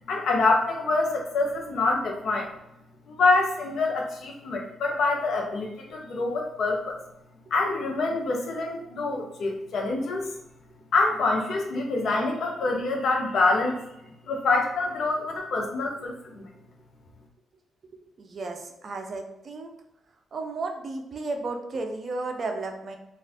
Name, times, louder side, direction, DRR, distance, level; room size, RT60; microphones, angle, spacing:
voice 1, 0.1-2.5 3.1-7.0 7.5-10.3 10.9-13.8 14.3-16.5, left 3 dB, 70° left, 1 dB, 0.6 m, -26 dB
voice 2, 18.2-19.7 20.3-23.0, right 3 dB, 50° right, 4 dB, 0.5 m, -33 dB
2.4 x 2.4 x 3.4 m, 0.85 s
cardioid pair, 95°, 0 cm